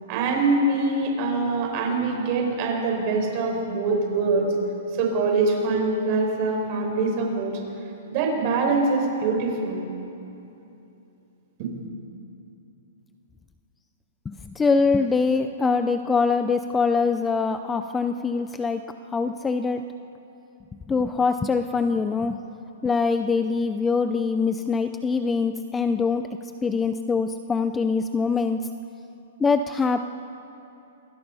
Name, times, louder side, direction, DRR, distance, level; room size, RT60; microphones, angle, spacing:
voice 1, 0.1-4.5 5.0-7.6 8.1-9.8 11.6-11.7, right 3 dB, 35° right, 1 dB, 5.6 m, -24 dB
voice 2, 14.3-19.8 20.9-22.4 22.8-26.2 26.6-28.6 29.4-30.0, left 4 dB, 10° left, 9 dB, 0.5 m, -23 dB
28.0 x 23.0 x 5.6 m, 2.8 s
hypercardioid pair, 165°, 0 cm